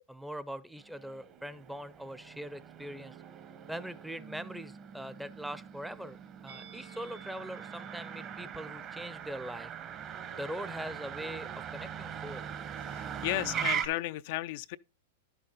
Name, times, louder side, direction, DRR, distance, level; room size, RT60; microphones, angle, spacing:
voice 1, 0.0-3.2 3.7-6.2 6.4-9.7 10.3-12.5, equal, 5° right, 0.6 m, -42 dB
Motor vehicle (road), 0.8-13.9, right 8 dB, 35° right, 1.0 m, -41 dB
Musical instrument, 6.5-11.7 12.0-12.2, right 6 dB, 80° right, 2.1 m, -58 dB
voice 2, 12.8-14.8, left 17 dB, 55° left, 0.4 m, -34 dB
10.5 x 6.7 x 3.8 m
hypercardioid pair, 110°, 0 cm